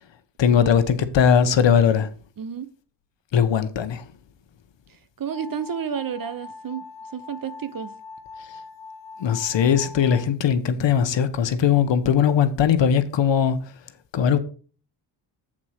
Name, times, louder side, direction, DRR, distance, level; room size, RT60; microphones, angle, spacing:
voice 1, 0.4-2.1 3.3-4.0 9.2-13.6 14.1-14.4, left 7 dB, 60° left, 1.0 m, -19 dB
voice 2, 2.4-2.7 4.9-7.9, right 7 dB, 45° right, 0.8 m, -32 dB
sound 1, 5.3-10.3, left 4 dB, 30° left, 1.7 m, -42 dB
7.5 x 4.1 x 6.3 m
cardioid pair, 75°, 50 cm